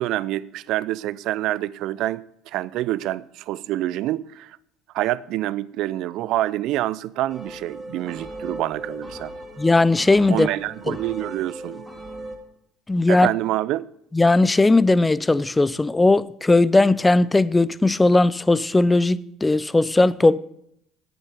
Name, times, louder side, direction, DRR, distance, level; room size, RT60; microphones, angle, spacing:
voice 1, 0.0-4.6 4.9-9.3 10.3-11.8 13.1-13.9, right 15 dB, 65° right, 0.4 m, -27 dB
sound 1, 7.3-12.4, right 1 dB, 10° right, 2.7 m, -38 dB
voice 2, 9.6-10.5 10.9-11.0 12.9-13.3 14.1-20.4, left 2 dB, 15° left, 0.4 m, -18 dB
8.5 x 8.2 x 6.8 m
supercardioid pair, 85°, 0 cm